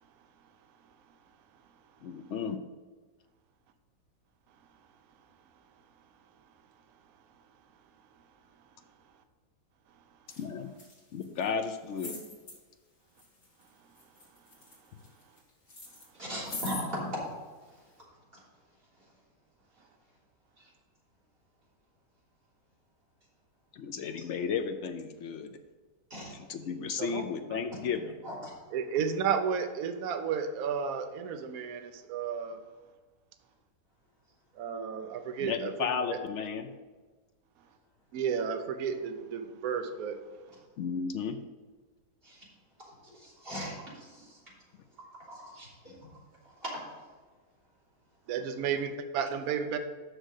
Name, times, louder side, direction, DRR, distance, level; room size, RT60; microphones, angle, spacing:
voice 1, 2.0-2.6 10.4-10.7 11.1-12.1 23.7-25.6 26.3-28.2 35.4-36.7 40.8-41.4, left 6 dB, 70° left, 7 dB, 0.7 m, -34 dB
sound 1, 10.3-10.4 10.7-11.5 12.0-12.6 13.2-13.7 14.0-15.4 15.7-16.9 17.6-17.7, left 3 dB, 45° left, 2.3 m, -42 dB
voice 2, 16.2-17.1 20.6-20.7 24.1-24.3 26.1-26.3 28.2-28.5 42.2-42.4 43.1-44.4 45.3-45.9 46.6-46.8, equal, 35° right, -7 dB, 3.5 m, -39 dB
voice 3, 28.7-32.6 34.6-35.7 36.1-36.2 38.1-40.2 48.3-49.8, right 7 dB, 65° right, 7 dB, 1.1 m, -32 dB
6.3 x 6.3 x 6.5 m, 1.4 s
omnidirectional pair, 1.8 m